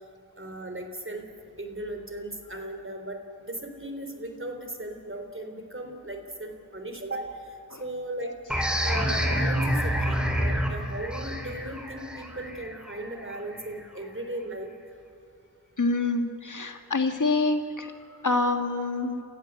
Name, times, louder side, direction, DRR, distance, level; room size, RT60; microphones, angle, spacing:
voice 1, 0.4-1.2 1.6-3.2 3.5-8.3 8.8-14.7, right 1 dB, 35° right, 5 dB, 3.7 m, -37 dB
sound 1, 8.5-13.8, equal, ahead, 4.0 m, -28 dB
voice 2, 15.8-19.2, left 3 dB, 55° left, 6 dB, 1.8 m, -27 dB
29.0 x 15.0 x 8.2 m, 2.9 s
cardioid pair, 45°, 37 cm